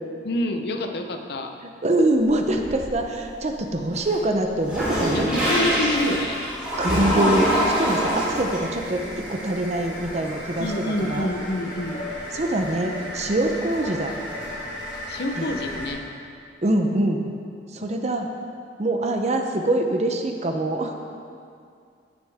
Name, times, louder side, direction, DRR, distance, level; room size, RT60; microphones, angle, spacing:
voice 1, 0.2-1.5 5.1-6.4 10.6-12.0 15.1-16.0, left 1 dB, 60° left, 5 dB, 0.7 m, -27 dB
voice 2, 1.6-5.6 6.8-7.5 7.8-10.7 11.0-11.3 12.3-14.1 15.4-15.5 16.6-17.2 17.7-18.3 18.8-20.9, right 1 dB, 35° right, 4 dB, 0.7 m, -24 dB
sound 1, 2.2-3.1 3.6-15.9, equal, 5° right, 2.7 m, -27 dB
15.0 x 6.4 x 3.5 m, 2.3 s
head